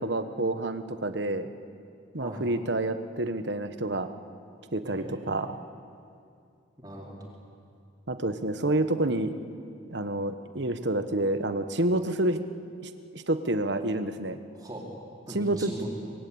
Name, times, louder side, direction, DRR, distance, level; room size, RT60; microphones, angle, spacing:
voice 1, 0.0-1.5 2.1-4.1 4.7-5.6 8.1-9.3 9.9-12.4 12.8-14.4 15.3-15.7, right 1 dB, 60° right, 9 dB, 1.3 m, -28 dB
voice 2, 4.8-5.5 6.8-7.2 14.5-14.9 15.3-15.9, right 1 dB, 20° right, -3 dB, 4.6 m, -40 dB
26.5 x 21.5 x 8.8 m, 2.4 s
head